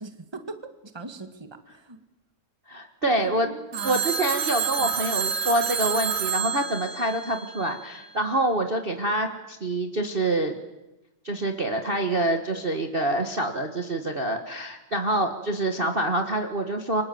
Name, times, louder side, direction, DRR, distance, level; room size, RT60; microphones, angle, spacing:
voice 1, 0.0-2.0 3.0-4.1 4.8-4.9, right 3 dB, 15° right, 8 dB, 0.8 m, -39 dB
voice 2, 2.7-3.5 3.8-10.5 11.2-17.0, right 1 dB, 45° right, 5 dB, 0.7 m, -26 dB
Telephone, 3.7-8.0, right 7 dB, 70° right, 4.0 m, -29 dB
29.0 x 25.0 x 7.9 m, 1.0 s
omnidirectional pair, 3.9 m